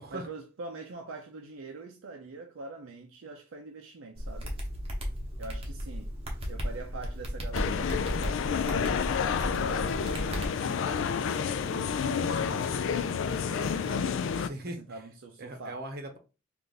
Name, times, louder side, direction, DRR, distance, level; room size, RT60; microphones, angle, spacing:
voice 1, 0.1-4.6 5.4-6.1 6.5-9.1 9.5-15.8, right 3 dB, 70° right, 0.5 m, -44 dB
sound 1, 4.1-10.5, equal, 30° right, 1.0 m, -35 dB
sound 2, 7.5-14.5, left 6 dB, 65° left, 0.3 m, -29 dB
voice 2, 12.5-12.9 14.4-15.0 15.4-16.2, right 1 dB, 50° right, 0.9 m, -40 dB
3.3 x 2.5 x 3.9 m
head